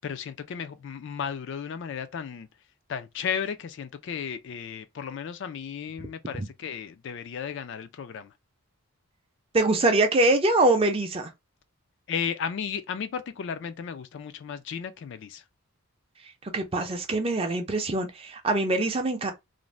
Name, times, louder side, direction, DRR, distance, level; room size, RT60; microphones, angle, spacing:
voice 1, 0.0-2.5 2.9-8.3 12.1-15.4, left 7 dB, 55° left, 0.3 m, -34 dB
voice 2, 9.5-11.3 16.5-19.3, right 2 dB, 25° right, 0.4 m, -23 dB
2.5 x 2.0 x 3.1 m
head